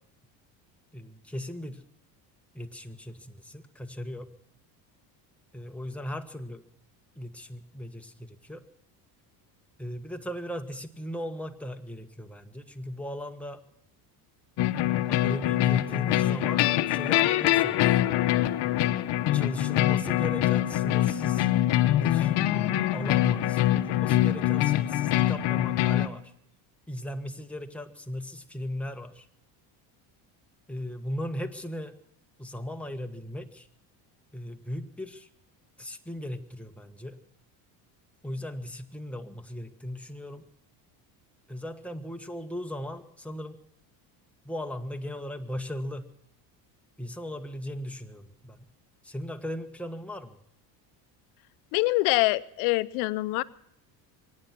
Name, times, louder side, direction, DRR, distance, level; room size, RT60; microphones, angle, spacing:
voice 1, 0.9-1.8 2.5-4.3 5.5-6.6 7.1-8.6 9.8-13.6 15.1-17.9 19.3-21.5 22.0-26.3 26.9-29.3 30.7-31.9 32.4-33.7 34.3-35.3 35.8-37.2 38.2-40.4 41.5-43.6 44.4-46.1 47.0-48.7 49.0-50.4, left 1 dB, 5° left, 4 dB, 1.4 m, -37 dB
sound 1, 14.6-26.1, left 14 dB, 60° left, 1.0 m, -24 dB
voice 2, 51.7-53.4, left 22 dB, 85° left, 16 dB, 0.7 m, -25 dB
24.0 x 9.7 x 5.9 m, 0.74 s
supercardioid pair, 100°, 47 cm